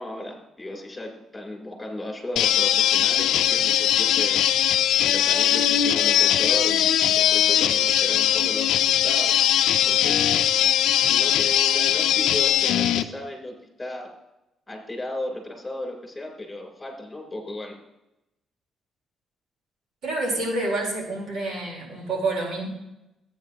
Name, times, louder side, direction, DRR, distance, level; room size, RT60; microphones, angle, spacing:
voice 1, 0.0-4.7 5.0-10.1 11.1-14.1 14.7-17.7, left 1 dB, 15° left, 1 dB, 3.6 m, -35 dB
sound 1, 2.4-13.0, left 11 dB, 85° left, 0.5 m, -20 dB
voice 2, 20.0-22.7, right 2 dB, 65° right, -2 dB, 4.0 m, -28 dB
14.0 x 9.1 x 3.0 m, 0.91 s
cardioid pair, 90°, 0 cm